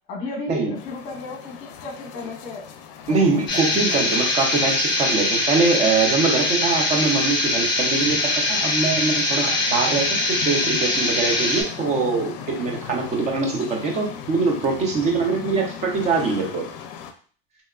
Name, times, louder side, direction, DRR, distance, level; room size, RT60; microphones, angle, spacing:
voice 1, 0.1-2.7 3.1-4.1, left 3 dB, 40° left, 1 dB, 1.0 m, -35 dB
sound 1, 0.7-17.1, left 7 dB, 65° left, 0.5 m, -38 dB
voice 2, 3.1-16.7, right 4 dB, 25° right, 1 dB, 0.5 m, -23 dB
sound 2, 3.5-11.6, left 2 dB, 15° left, 0.8 m, -22 dB
3.4 x 2.8 x 2.3 m, 0.43 s
cardioid pair, 170°, 30 cm